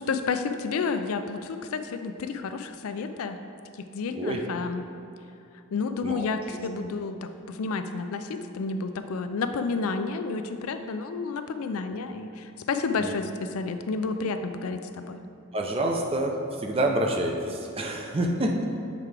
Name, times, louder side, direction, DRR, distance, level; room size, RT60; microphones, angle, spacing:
voice 1, 0.1-3.4 3.9-4.9 5.7-15.2, left 4 dB, 85° left, 8 dB, 0.4 m, -30 dB
voice 2, 15.5-16.4 16.6-18.7, right 1 dB, 25° right, 2 dB, 0.5 m, -27 dB
7.4 x 4.7 x 3.3 m, 2.7 s
head